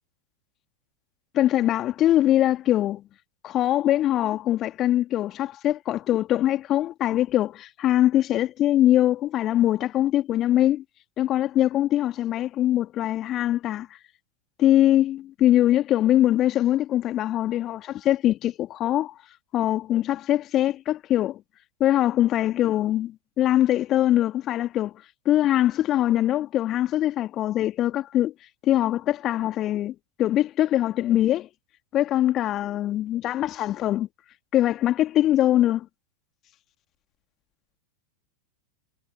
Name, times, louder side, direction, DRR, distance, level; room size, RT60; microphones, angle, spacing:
voice 1, 1.3-3.0 3.4-10.8 11.2-13.9 14.6-19.1 19.5-21.4 21.8-24.9 25.3-28.3 28.6-31.5 31.9-34.1 34.5-35.9, left 13 dB, 30° left, 2.2 m, -22 dB
figure-of-eight pair, 90°, 0 cm